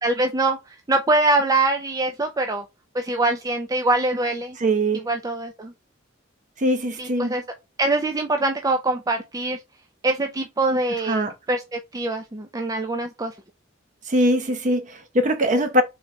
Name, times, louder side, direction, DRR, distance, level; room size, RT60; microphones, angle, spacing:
voice 1, 0.0-2.6 2.9-4.6 4.9-5.7 7.0-7.4 7.8-9.6 10.0-13.3, right 2 dB, 20° right, 0.5 m, -24 dB
voice 2, 4.6-5.0 6.6-7.3 11.1-11.3 14.1-15.8, equal, 40° right, 0.8 m, -21 dB
3.9 x 3.1 x 3.5 m
head